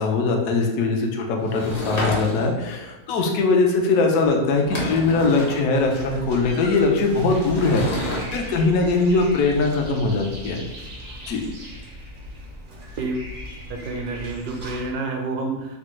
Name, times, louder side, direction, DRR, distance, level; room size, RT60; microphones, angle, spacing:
voice 1, 0.0-10.6 11.3-11.4, left 3 dB, 70° left, 1 dB, 1.0 m, -21 dB
Sliding door / Wood, 1.4-2.7 4.2-4.3 4.5-5.6 7.4-8.4, left 1 dB, 55° left, 0.4 m, -29 dB
sound 1, 5.7-14.9, left 1 dB, 60° right, 0.5 m, -38 dB
voice 2, 13.0-13.3 13.7-15.8, right 3 dB, 80° right, 2 dB, 1.1 m, -29 dB
3.3 x 2.1 x 3.0 m, 1.0 s
omnidirectional pair, 1.6 m